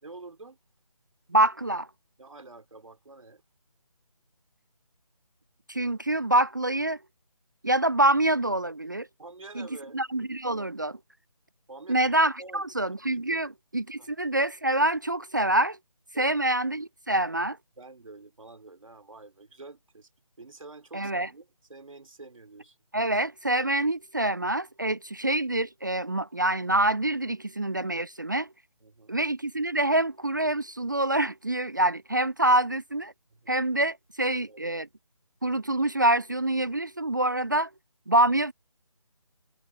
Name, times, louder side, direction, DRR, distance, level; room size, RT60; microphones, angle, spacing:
voice 1, 0.0-0.6 2.2-3.4 9.2-10.0 11.7-12.1 12.4-12.9 13.3-13.4 14.0-14.1 16.1-16.4 17.8-20.1 20.4-22.8 28.8-29.2 33.3-33.6 34.2-34.6, right 3 dB, 60° right, 3.4 m, -47 dB
voice 2, 1.3-1.9 5.7-7.0 7.6-9.1 9.6-9.7 9.9-11.0 11.9-15.8 16.2-17.6 20.9-21.3 22.9-28.5 29.1-33.1 33.5-34.9 35.4-37.7 38.1-38.5, right 1 dB, 30° right, 0.4 m, -26 dB
figure-of-eight pair, 160°, 19 cm